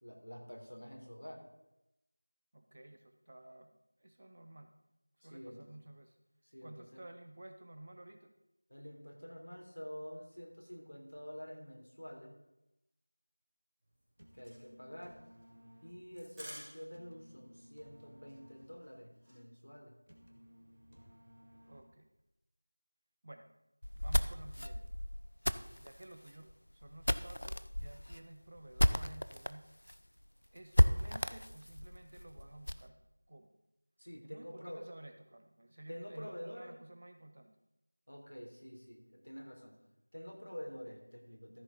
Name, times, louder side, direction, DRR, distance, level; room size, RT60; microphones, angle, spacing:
voice 1, 0.0-1.4 5.2-5.7 6.4-7.0 8.7-12.4 14.3-15.2 15.8-20.0 34.0-34.9 35.9-36.9 38.1-39.8 40.1-41.6, equal, 90° left, 0 dB, 3.5 m, -48 dB
voice 2, 2.5-3.7 4.0-4.7 5.2-6.2 6.6-8.3 21.7-22.1 23.2-23.5 24.0-24.8 25.7-29.7 30.5-33.0 33.3-33.5 34.2-37.5, right 1 dB, 20° right, 7 dB, 0.4 m, -53 dB
sound 1, 13.8-17.2 17.4-17.5 17.8-18.0 18.3-19.4, equal, ahead, 1.2 m, -52 dB
sound 2, 14.0-22.2, equal, 55° right, 1.7 m, -60 dB
sound 3, 23.8-29.5 29.9-30.0 30.2-30.3 30.7-32.9, left 1 dB, 55° left, 0.5 m, -32 dB
14.0 x 7.2 x 4.0 m, 0.91 s
figure-of-eight pair, 180°, 0 cm